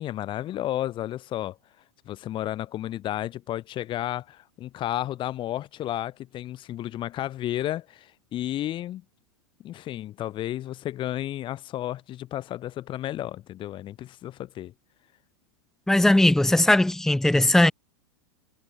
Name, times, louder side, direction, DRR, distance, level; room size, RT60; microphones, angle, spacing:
voice 1, 0.0-1.6 2.1-9.0 9.6-14.7, left 13 dB, 35° left, 5.7 m, -32 dB
voice 2, 15.9-17.7, left 1 dB, 5° left, 1.2 m, -19 dB
hypercardioid pair, 125°, 15 cm